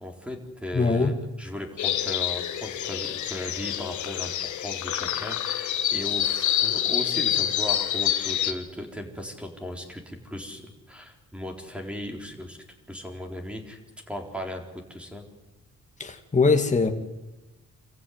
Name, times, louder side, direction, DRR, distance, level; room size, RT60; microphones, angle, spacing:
voice 1, 0.0-12.6 12.9-13.8 14.1-14.6 14.9-15.3, left 1 dB, 5° right, 2 dB, 4.1 m, -37 dB
voice 2, 0.7-1.2 16.0-16.9, left 4 dB, 25° left, 5 dB, 2.2 m, -22 dB
sound 1, 1.8-8.5, left 10 dB, 75° left, 1.7 m, -27 dB
26.5 x 15.5 x 9.5 m, 1.1 s
cardioid pair, 90°, 30 cm